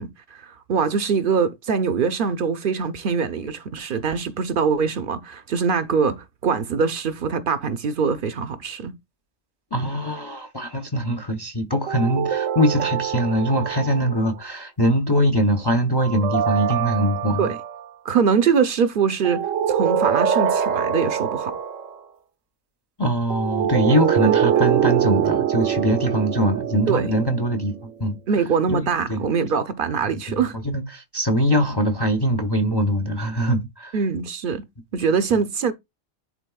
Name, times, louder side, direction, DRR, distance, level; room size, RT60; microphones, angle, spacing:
voice 1, 0.0-8.9 17.4-17.6 18.0-21.6 26.9-27.1 28.3-30.6 33.9-34.6 34.9-35.7, right 6 dB, 55° right, 0.7 m, -23 dB
voice 2, 9.7-17.5 23.0-27.7 28.0-28.2 28.7-29.3 30.1-34.0, equal, 30° left, 0.5 m, -22 dB
sound 1, 11.9-14.3 16.0-17.9 19.2-22.0 23.3-27.8, right 9 dB, 75° right, 1.0 m, -24 dB
11.0 x 3.8 x 2.3 m
omnidirectional pair, 1.3 m